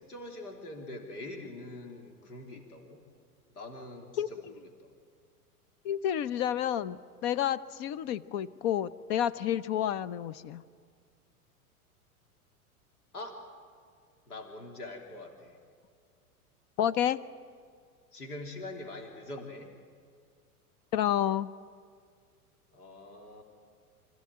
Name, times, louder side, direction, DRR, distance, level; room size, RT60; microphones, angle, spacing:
voice 1, 0.0-3.0 3.5-4.9 13.1-13.4 14.3-15.6 18.1-19.7 22.7-23.4, left 2 dB, 75° left, 3 dB, 3.3 m, -44 dB
voice 2, 5.8-10.6 16.8-17.2 20.9-21.5, left 10 dB, 40° left, 17 dB, 0.8 m, -30 dB
25.5 x 15.0 x 8.8 m, 2.1 s
figure-of-eight pair, 95°, 46 cm